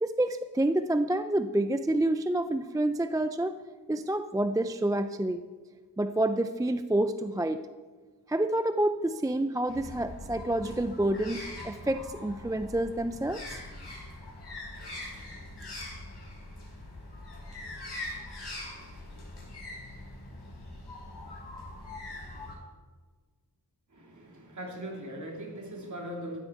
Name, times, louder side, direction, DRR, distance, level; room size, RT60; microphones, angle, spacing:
voice 1, 0.0-3.6 3.9-5.4 6.0-7.7 8.3-13.6, right 1 dB, 10° right, 10 dB, 0.4 m, -28 dB
sound 1, 9.7-22.6, left 2 dB, 80° left, 5.3 m, -42 dB
voice 2, 23.9-26.4, right 1 dB, 45° right, 0 dB, 3.3 m, -40 dB
15.0 x 12.5 x 4.7 m, 1.4 s
wide cardioid pair, 145°, 41 cm